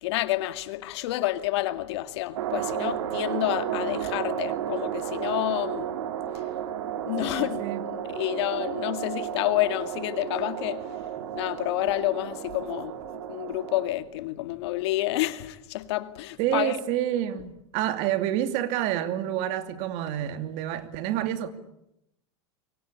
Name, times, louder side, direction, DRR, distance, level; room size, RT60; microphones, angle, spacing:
voice 1, 0.0-5.9 7.0-7.7 7.9-10.9 11.3-16.8, left 16 dB, 70° left, 2.2 m, -29 dB
sound 1, 2.4-13.9, right 10 dB, 85° right, 3.2 m, -32 dB
voice 2, 7.2-7.9 16.4-21.5, right 12 dB, 50° right, 2.7 m, -28 dB
27.5 x 24.0 x 8.5 m
supercardioid pair, 140°, 15 cm